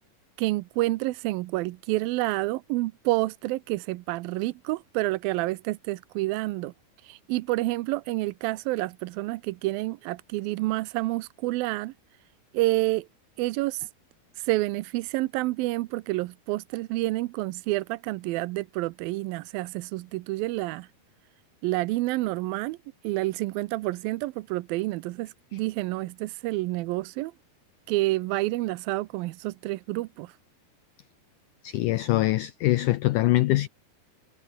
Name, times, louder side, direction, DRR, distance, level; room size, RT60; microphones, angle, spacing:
voice 1, 0.4-6.7 7.0-11.9 12.5-13.1 13.4-13.9 14.4-20.9 21.6-22.8 23.0-27.3 27.9-30.4, right 19 dB, 80° right, 2.3 m, -29 dB
voice 2, 31.6-33.7, left 17 dB, 90° left, 1.8 m, -23 dB
omnidirectional pair, 4.5 m